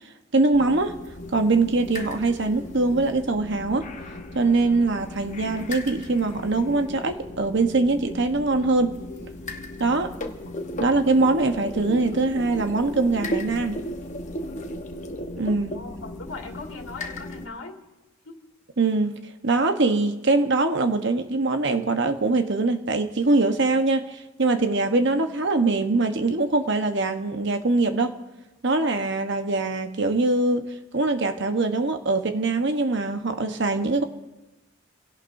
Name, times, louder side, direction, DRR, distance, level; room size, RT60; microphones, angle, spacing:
voice 1, 0.3-0.9 1.3-3.9 4.3-8.9 9.8-10.1 10.8-13.8 15.4-15.7 18.8-28.1 28.6-34.0, right 3 dB, 60° right, 7 dB, 1.1 m, -23 dB
sound 1, 0.5-17.5, left 1 dB, 40° left, 1.1 m, -36 dB
voice 2, 15.5-17.8 18.2-18.4, left 3 dB, 90° left, 1 dB, 2.3 m, -39 dB
28.0 x 17.0 x 2.7 m, 1.1 s
head